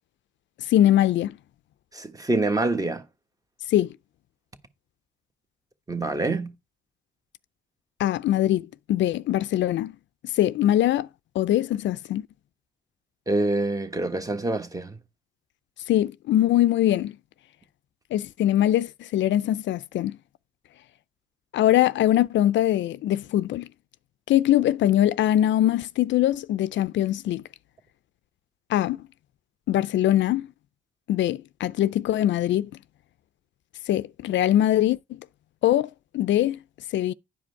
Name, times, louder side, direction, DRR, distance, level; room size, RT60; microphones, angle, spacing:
voice 1, 0.7-1.3 3.7-3.9 8.0-9.9 10.3-11.1 11.4-12.3 15.9-17.1 18.1-20.2 21.5-23.7 24.3-27.4 28.7-29.0 29.7-30.5 31.1-32.7 33.9-35.0 35.6-36.6 36.9-37.1, left 12 dB, 70° left, 0.4 m, -22 dB
voice 2, 1.9-3.0 5.9-6.5 13.3-15.0, right 2 dB, 15° right, 1.3 m, -26 dB
10.5 x 5.0 x 4.7 m
cardioid pair, 90°, 20 cm